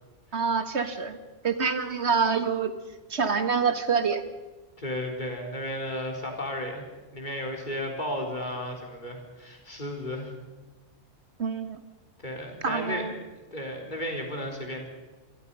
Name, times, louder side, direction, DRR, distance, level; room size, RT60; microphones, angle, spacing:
voice 1, 0.3-1.2 1.4-2.7 3.1-4.2 11.4-11.8 12.6-13.1, right 5 dB, 60° right, 9 dB, 1.9 m, -26 dB
voice 2, 4.8-6.9 7.1-10.3 12.2-13.0 13.4-14.9, left 1 dB, 35° left, 1 dB, 4.3 m, -34 dB
28.0 x 23.0 x 5.6 m, 1.2 s
omnidirectional pair, 1.3 m